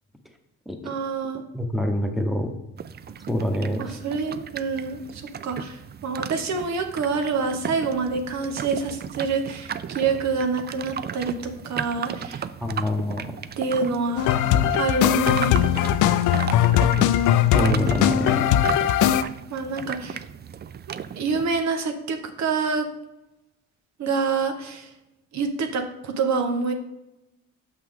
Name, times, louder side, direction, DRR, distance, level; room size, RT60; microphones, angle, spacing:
voice 1, 0.8-1.4 3.8-12.4 13.6-14.3 14.7-15.6 19.5-20.2 21.2-22.8 24.0-24.9 25.3-26.7, right 4 dB, 65° right, 6 dB, 1.1 m, -27 dB
voice 2, 1.5-2.5 3.3-4.0 12.6-13.4 17.5-18.5, left 1 dB, ahead, 4 dB, 1.1 m, -26 dB
sound 1, 2.8-21.6, right 8 dB, 35° right, 0.4 m, -35 dB
sound 2, 14.2-19.2, left 11 dB, 80° left, 0.5 m, -20 dB
6.7 x 5.8 x 3.6 m, 0.93 s
cardioid pair, 90°, 30 cm